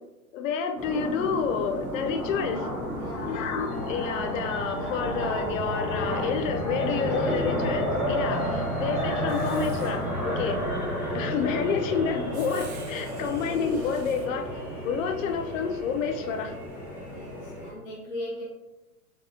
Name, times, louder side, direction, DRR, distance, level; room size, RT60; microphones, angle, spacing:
voice 1, 0.3-2.7 3.3-10.6 11.1-14.5 14.8-16.5, left 6 dB, 60° left, 6 dB, 0.6 m, -29 dB
sound 1, 0.8-17.7, equal, 5° right, 0.6 m, -31 dB
voice 2, 3.0-3.5 6.9-7.3 17.0-18.4, left 1 dB, 30° left, -4 dB, 1.0 m, -39 dB
sound 2, 3.3-9.7, left 1 dB, 75° left, 1.3 m, -39 dB
Writing, 9.3-10.0 12.3-14.3, right 5 dB, 60° right, 1.0 m, -48 dB
3.9 x 3.6 x 2.7 m, 1.0 s
hypercardioid pair, 130°, 45 cm